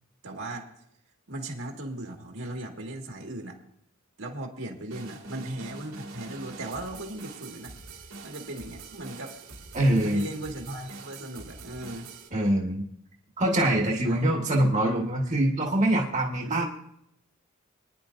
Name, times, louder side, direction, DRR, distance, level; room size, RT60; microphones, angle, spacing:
voice 1, 0.2-0.7 1.3-3.6 4.2-7.7 8.2-9.4 10.0-12.1 14.0-14.3 16.4-16.7, right 1 dB, 70° right, 1 dB, 1.9 m, -37 dB
sound 1, 4.9-12.3, right 3 dB, 90° right, 2.5 m, -44 dB
voice 2, 9.7-10.2 12.3-12.8 13.4-16.6, right 1 dB, 35° right, -1 dB, 1.5 m, -24 dB
24.5 x 10.0 x 2.6 m, 0.73 s
head